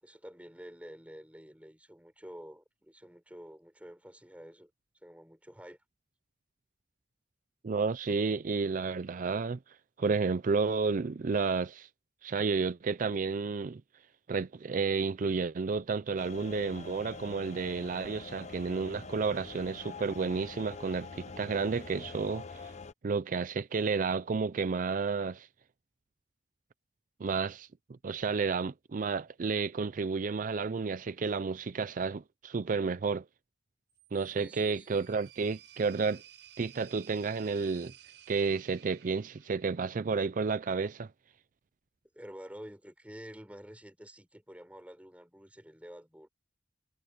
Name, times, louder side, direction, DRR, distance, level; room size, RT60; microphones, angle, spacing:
voice 1, 0.0-4.7 5.0-5.8 34.3-35.3 42.1-46.3, equal, 10° right, 4.4 m, -49 dB
voice 2, 7.6-9.6 10.0-11.9 12.2-13.8 14.3-22.7 23.0-25.5 27.2-27.7 28.0-33.2 34.1-36.2 36.6-37.9 38.3-41.1, right 4 dB, 45° right, 0.4 m, -31 dB
sound 1, 16.2-22.9, left 4 dB, 40° left, 0.7 m, -45 dB
sound 2, 33.9-40.1, right 11 dB, 80° right, 5.3 m, -56 dB
head